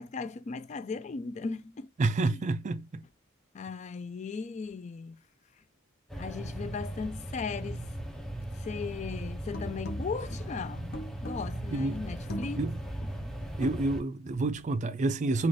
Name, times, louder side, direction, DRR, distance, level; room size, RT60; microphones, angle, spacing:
voice 1, 0.0-1.9 2.3-2.4 3.5-5.2 6.2-7.9 8.6-12.6, left 5 dB, 35° left, 0.3 m, -37 dB
voice 2, 2.0-3.0 11.7-12.0 12.6-12.8 13.6-15.5, right 2 dB, 35° right, 0.4 m, -28 dB
sound 1, 6.1-14.0, right 1 dB, ahead, 0.7 m, -38 dB
sound 2, 9.5-14.7, left 1 dB, 50° left, 0.8 m, -42 dB
3.9 x 2.4 x 3.2 m
head